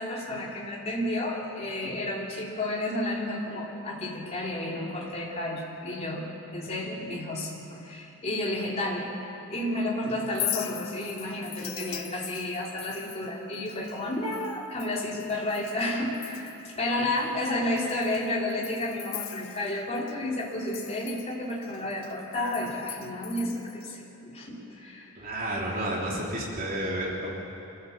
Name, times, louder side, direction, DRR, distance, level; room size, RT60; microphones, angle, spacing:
voice 1, 0.0-6.3 6.5-9.1 9.5-25.1, left 1 dB, 30° left, -3 dB, 3.5 m, -31 dB
Chink clink, 10.2-15.9 16.1-16.7 17.2-17.3 17.8-20.1 20.4-23.9, left 13 dB, 75° left, 0.9 m, -40 dB
voice 2, 25.2-27.3, right 1 dB, 40° right, -3 dB, 3.4 m, -31 dB
25.5 x 15.0 x 7.4 m, 2.9 s
head